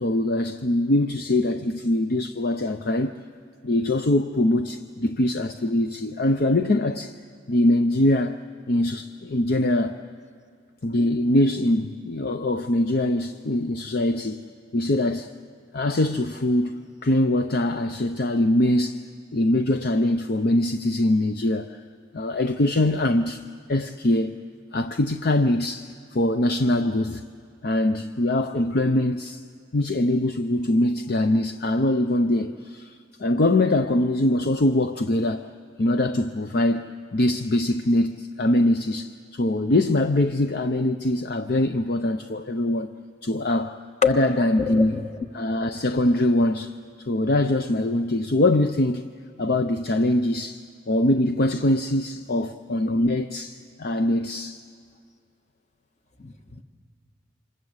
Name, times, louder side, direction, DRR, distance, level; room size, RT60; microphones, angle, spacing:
voice 1, 0.0-3.1 3.6-7.1 7.5-8.4 8.7-10.0 10.8-14.4 14.7-15.3 15.7-19.0 19.3-21.8 22.1-23.4 23.7-24.4 24.7-27.2 27.6-29.4 29.7-35.5 35.8-42.9 43.2-43.8 44.1-45.0 45.3-46.7 47.1-49.0 49.4-54.6, left 1 dB, 50° left, 0.6 m, -23 dB
voice 2, 44.6-45.1 56.2-56.6, left 6 dB, 35° left, 1.4 m, -25 dB
28.5 x 26.0 x 8.0 m
head